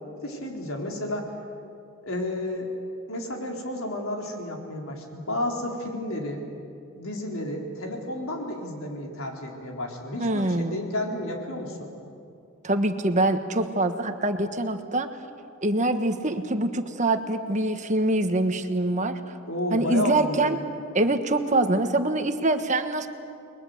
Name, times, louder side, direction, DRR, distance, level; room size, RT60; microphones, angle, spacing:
voice 1, 0.2-1.3 2.0-2.7 3.1-6.4 7.0-11.9 19.5-20.6, left 1 dB, 75° left, 1 dB, 4.1 m, -31 dB
voice 2, 10.2-10.9 12.6-15.1 15.6-19.3 19.7-20.6 20.9-23.1, right 2 dB, 35° right, 7 dB, 1.3 m, -24 dB
30.0 x 22.0 x 8.0 m, 2.5 s
head